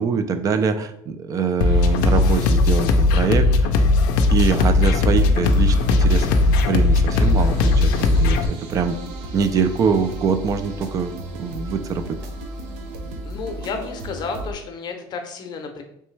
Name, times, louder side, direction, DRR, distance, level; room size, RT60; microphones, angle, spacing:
voice 1, 0.0-3.5 4.3-6.3 6.7-9.0 9.3-11.1 11.4-12.2, right 5 dB, 35° right, 10 dB, 0.3 m, -23 dB
sound 1, 1.6-8.5, left 2 dB, 85° left, 0.4 m, -17 dB
sound 2, 4.5-14.5, right 1 dB, 75° right, 0.6 m, -34 dB
voice 2, 13.2-15.8, left 4 dB, 40° left, 4 dB, 0.6 m, -31 dB
3.2 x 3.0 x 3.2 m, 0.76 s
cardioid pair, 125°, 11 cm